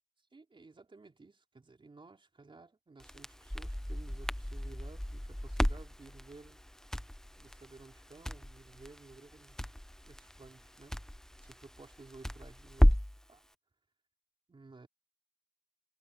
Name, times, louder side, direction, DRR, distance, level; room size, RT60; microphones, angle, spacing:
voice 1, 0.3-6.6 7.4-9.7 10.0-11.0 11.4-13.0 13.3-13.4 14.5-14.9, right 3 dB, 60° right, 4.3 m, -55 dB
Crackle, 3.0-13.2, equal, 5° left, 0.8 m, -34 dB
wide cardioid pair, 80°, 10 cm